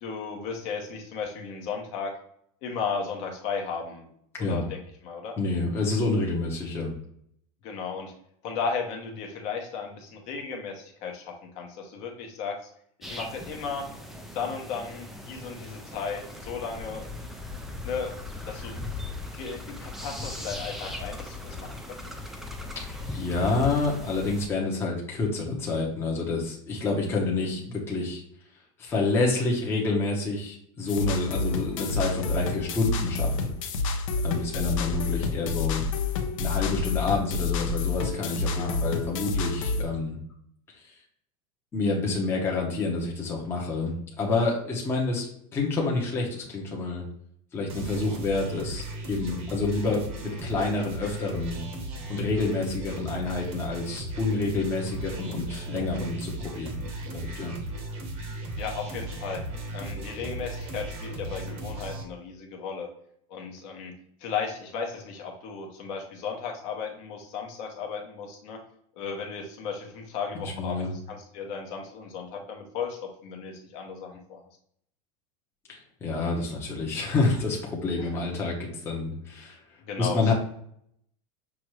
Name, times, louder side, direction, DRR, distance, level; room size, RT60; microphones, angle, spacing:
voice 1, 0.0-2.1 2.6-4.1 4.4-5.3 7.6-8.1 8.4-12.6 13.0-13.8 14.3-17.1 17.8-18.8 19.3-22.0 38.5-38.8 58.5-59.4 59.7-62.9 63.3-63.9 64.2-68.6 69.0-74.4 78.0-78.1 79.9-80.2, left 5 dB, 45° left, 2 dB, 0.9 m, -35 dB
voice 2, 5.4-6.9 23.1-28.2 28.8-33.5 34.2-35.8 36.4-40.2 40.8-40.9 41.7-47.0 47.5-51.6 52.1-56.8 57.1-57.5 70.3-70.9 75.7-79.6 80.0-80.3, left 3 dB, 15° left, -3 dB, 0.8 m, -28 dB
sound 1, 13.0-24.5, left 2 dB, ahead, 0.3 m, -38 dB
sound 2, 30.9-39.8, left 4 dB, 85° left, 0.8 m, -29 dB
sound 3, 47.7-62.0, right 1 dB, 35° right, 0.9 m, -36 dB
6.0 x 2.5 x 3.1 m, 0.67 s
supercardioid pair, 160°, 16 cm